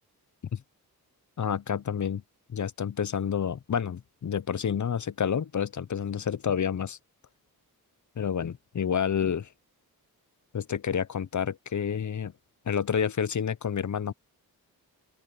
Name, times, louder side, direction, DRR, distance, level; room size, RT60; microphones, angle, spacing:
voice 1, 1.4-2.2 2.5-7.0 8.2-9.5 10.5-12.3 12.7-14.1, left 8 dB, 50° left, 0.7 m, -29 dB
open air
cardioid pair, 60°, 38 cm